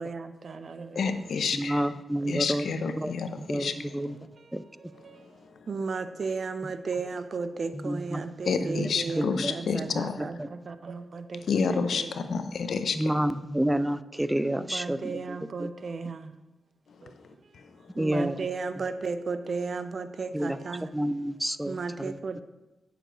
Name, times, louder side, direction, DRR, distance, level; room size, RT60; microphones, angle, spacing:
voice 1, 0.0-1.3 2.2-2.9 4.4-4.5 4.8-12.3 14.6-16.4 17.0-17.6 17.9-20.9 21.7-22.4, right 4 dB, 60° right, 10 dB, 0.5 m, -35 dB
voice 2, 0.9-1.8 2.3-3.3 3.5-3.7 5.1-5.2 8.5-10.2 11.5-13.0 17.5-17.9, left 5 dB, 75° left, 9 dB, 0.6 m, -29 dB
voice 3, 1.5-2.7 2.9-4.2 4.5-4.6 7.7-8.3 8.6-9.5 9.9-10.5 12.9-15.7 18.0-18.4 20.3-22.2, right 1 dB, 10° right, 14 dB, 0.4 m, -30 dB
9.0 x 6.7 x 3.0 m, 1.1 s
cardioid pair, 50°, 0 cm